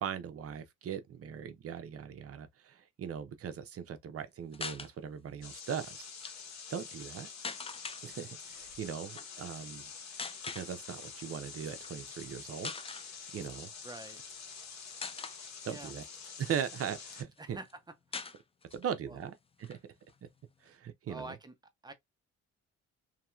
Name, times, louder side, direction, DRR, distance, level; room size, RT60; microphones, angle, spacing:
voice 1, 0.0-6.1 6.7-7.3 8.0-9.9 10.5-13.7 15.6-16.0 16.4-17.6 18.7-19.3 19.6-19.8 20.2-20.3 20.6-21.4, right 8 dB, 50° right, 0.7 m, -39 dB
sound 1, 4.5-4.9 6.0-6.3 7.4-8.0 9.1-9.3 10.2-10.7 11.7-11.9 12.3-12.4 12.6-13.1 14.0-14.6 15.0-15.4 16.0-17.0 17.4-17.5 17.7-17.8 18.1-18.9 19.2-19.3 19.6-20.7, left 4 dB, 20° left, 0.4 m, -42 dB
sound 2, 5.4-17.2, left 6 dB, 60° left, 1.2 m, -47 dB
voice 2, 13.8-14.2 15.7-15.9 17.4-17.7 18.1-18.2 19.1-19.2 21.1-21.5 21.8-21.9, right 2 dB, 15° right, 0.8 m, -46 dB
2.9 x 2.8 x 2.3 m
cardioid pair, 90°, 30 cm